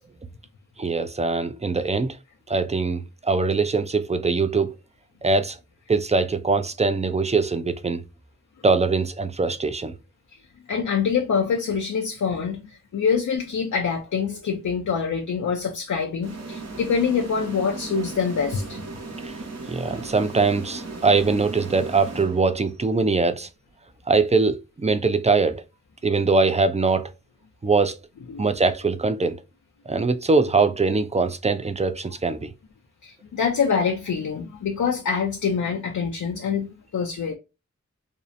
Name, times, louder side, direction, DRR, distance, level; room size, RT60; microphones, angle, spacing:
voice 1, 0.8-2.2 2.5-4.7 5.2-5.6 5.9-8.0 8.6-9.9 19.2-19.4 19.7-23.5 24.1-25.6 26.0-27.1 27.6-28.0 28.4-29.4 29.9-32.5, right 4 dB, 25° right, 0.3 m, -22 dB
voice 2, 10.3-18.8 28.3-28.4 33.0-37.3, left 6 dB, 80° left, 0.5 m, -25 dB
sound 1, 16.2-22.8, right 3 dB, 60° right, 0.8 m, -37 dB
2.6 x 2.0 x 2.4 m
wide cardioid pair, 65°, 29 cm